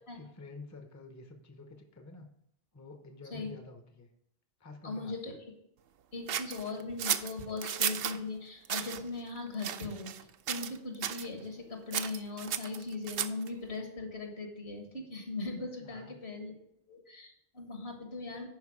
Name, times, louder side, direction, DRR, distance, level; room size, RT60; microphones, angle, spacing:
voice 1, 0.1-2.3 2.7-4.1 4.6-5.1 15.8-16.1, left 3 dB, 15° left, 6 dB, 0.7 m, -49 dB
voice 2, 4.8-5.3 6.1-16.6 16.9-18.5, left 3 dB, 65° left, 3 dB, 1.8 m, -39 dB
sound 1, 6.3-8.2 8.6-9.0 9.6-10.2 10.5-10.8 11.0-11.3 11.9-13.5, right 9 dB, 65° right, 0.7 m, -34 dB
11.0 x 4.6 x 4.9 m, 0.75 s
omnidirectional pair, 1.2 m